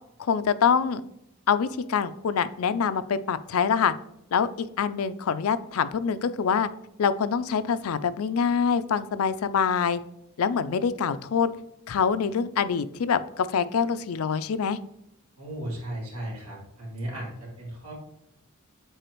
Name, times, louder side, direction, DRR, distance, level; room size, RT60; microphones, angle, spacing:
voice 1, 0.2-1.0 1.5-3.9 4.3-6.7 7.0-10.0 10.4-11.5 11.9-14.8, left 6 dB, 80° left, 13 dB, 0.4 m, -25 dB
voice 2, 15.4-17.9, right 1 dB, 90° right, -4 dB, 2.3 m, -36 dB
7.9 x 4.2 x 3.0 m, 0.81 s
head